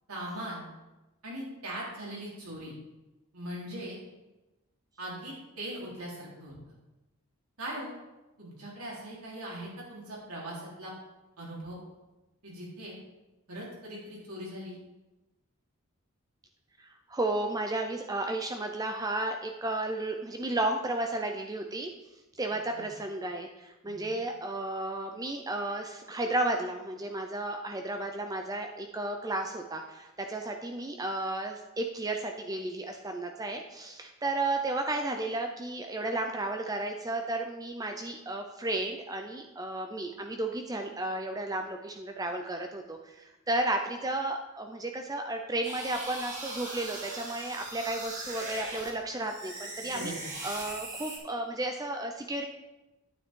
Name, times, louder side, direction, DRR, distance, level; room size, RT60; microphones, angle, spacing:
voice 1, 0.1-0.7 1.2-2.7 3.3-4.0 5.0-6.5 7.6-7.9 8.4-10.9 11.4-11.8 12.4-13.0 13.5-14.8 22.7-22.9 23.8-24.1 49.9-50.3, right 1 dB, 85° right, -5 dB, 3.8 m, -40 dB
voice 2, 16.8-21.9 22.4-50.1 50.4-52.5, right 2 dB, 15° right, 4 dB, 0.5 m, -33 dB
sound 1, 45.6-48.9 49.2-51.2, right 2 dB, 35° right, 2.3 m, -40 dB
9.3 x 9.1 x 3.7 m, 1.0 s
head